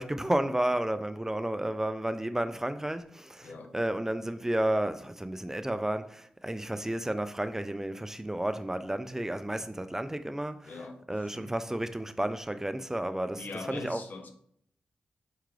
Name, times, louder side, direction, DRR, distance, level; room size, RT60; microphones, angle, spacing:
voice 1, 0.0-10.7 11.1-14.0, right 1 dB, 15° right, 0.3 m, -32 dB
voice 2, 3.4-3.7 10.6-11.6 13.4-14.3, left 3 dB, 65° left, 0.6 m, -42 dB
4.6 x 2.3 x 3.1 m
cardioid pair, 50°, 3 cm